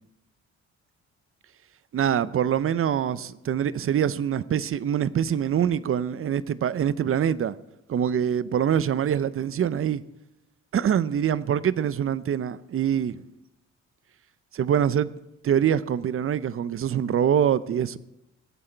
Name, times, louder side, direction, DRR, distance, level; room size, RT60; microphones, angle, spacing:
voice 1, 1.9-7.5 7.9-10.0 10.7-13.2 14.5-15.1 15.4-18.0, right 9 dB, 45° right, 0.6 m, -24 dB
19.5 x 8.6 x 4.5 m
cardioid pair, 90°, 30 cm